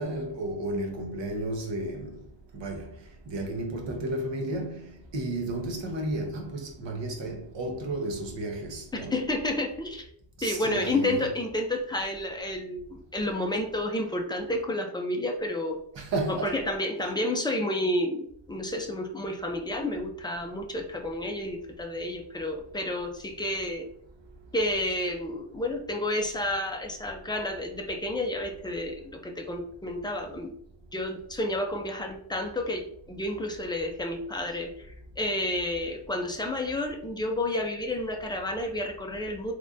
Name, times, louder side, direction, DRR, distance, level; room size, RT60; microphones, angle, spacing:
voice 1, 0.0-2.2 2.5-2.9 3.3-4.9 5.1-9.1 10.4-11.3 16.0-16.6, right 1 dB, 70° right, 0.9 m, -32 dB
voice 2, 9.1-10.1 10.4-15.8 16.3-23.9 24.5-30.5 30.9-34.9 35.2-39.5, left 1 dB, 10° left, 0.3 m, -30 dB
3.6 x 3.1 x 2.5 m
wide cardioid pair, 165°, 45 cm